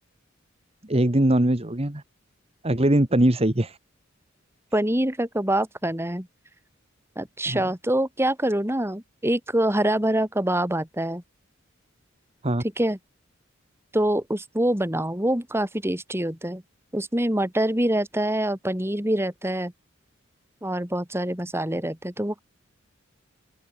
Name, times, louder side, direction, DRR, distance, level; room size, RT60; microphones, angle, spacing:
voice 1, 0.9-2.0 2.6-3.8 7.4-7.7 12.4-12.6, right 1 dB, 30° right, 1.6 m, -21 dB
voice 2, 4.7-6.3 7.2-11.2 12.8-13.0 13.9-16.6 16.9-19.7 20.6-22.4, right 1 dB, 10° right, 3.3 m, -25 dB
open air
head